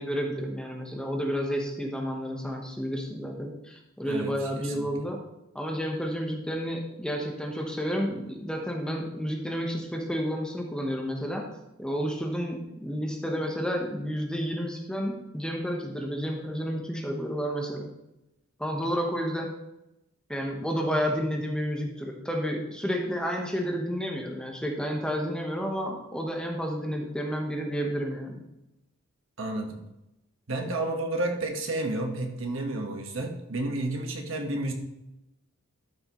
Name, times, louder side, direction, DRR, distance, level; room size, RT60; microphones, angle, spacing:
voice 1, 0.0-5.2 5.5-11.4 11.8-17.9 18.6-19.5 20.3-28.4, equal, 5° left, 1 dB, 1.0 m, -31 dB
voice 2, 4.0-4.9 29.4-29.8 30.5-34.7, right 2 dB, 65° right, 3 dB, 1.3 m, -31 dB
12.5 x 6.1 x 3.1 m, 0.88 s
head